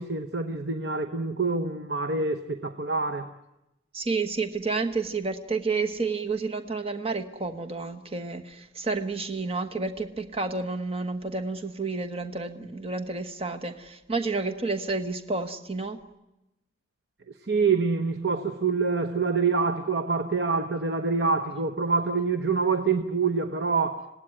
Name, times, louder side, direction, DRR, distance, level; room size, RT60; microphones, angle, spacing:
voice 1, 0.0-3.3 17.5-24.1, right 4 dB, 60° right, 7 dB, 1.0 m, -26 dB
voice 2, 3.9-16.0, right 3 dB, 30° right, 6 dB, 1.2 m, -30 dB
25.5 x 18.0 x 9.9 m, 0.96 s
head